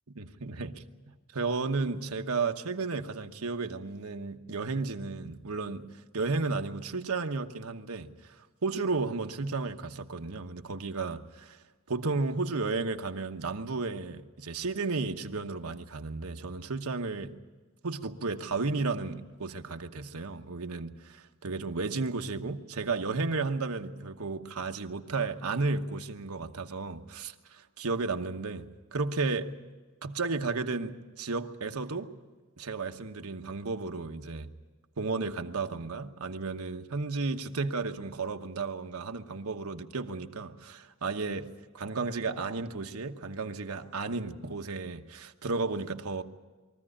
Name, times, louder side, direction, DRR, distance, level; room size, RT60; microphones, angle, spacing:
voice 1, 0.1-0.8 1.3-5.9 6.1-8.3 8.6-11.6 11.9-17.4 17.8-28.7 28.9-29.5 30.0-32.1 32.6-34.5 35.0-46.2, right 3 dB, 85° right, 1.1 m, -33 dB
22.5 x 14.5 x 9.9 m
head